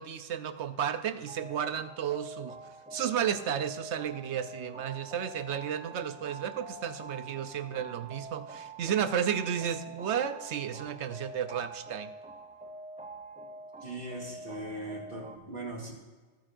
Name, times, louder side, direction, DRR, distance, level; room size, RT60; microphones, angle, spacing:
voice 1, 0.0-2.6 2.9-12.1, right 8 dB, 75° right, 10 dB, 1.0 m, -33 dB
sound 1, 1.3-15.4, right 2 dB, 10° right, 0.6 m, -46 dB
voice 2, 13.8-15.9, right 1 dB, 50° right, -2 dB, 2.4 m, -39 dB
20.0 x 9.0 x 2.5 m, 1.3 s
omnidirectional pair, 1.2 m